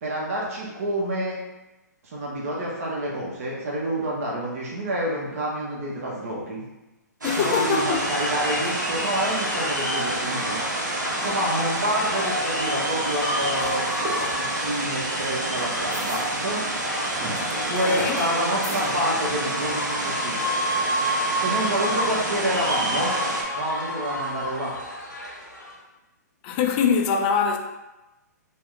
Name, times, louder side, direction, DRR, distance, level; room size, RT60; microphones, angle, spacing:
voice 1, 0.0-1.4 2.0-6.6 7.3-10.6 11.2-13.9 14.2-16.6 17.6-20.4 21.4-23.1 23.5-24.7, right 1 dB, 50° right, 0.8 m, -28 dB
voice 2, 7.2-8.0 17.5-18.2 26.4-27.6, left 6 dB, 30° left, 0.3 m, -23 dB
sound 1, 7.2-23.4, right 1 dB, 85° right, 0.7 m, -29 dB
sound 2, 7.7-25.8, equal, 85° left, 0.8 m, -30 dB
sound 3, 12.1-19.4, right 2 dB, 25° right, 0.9 m, -39 dB
2.7 x 2.1 x 3.5 m
figure-of-eight pair, 125°, 10 cm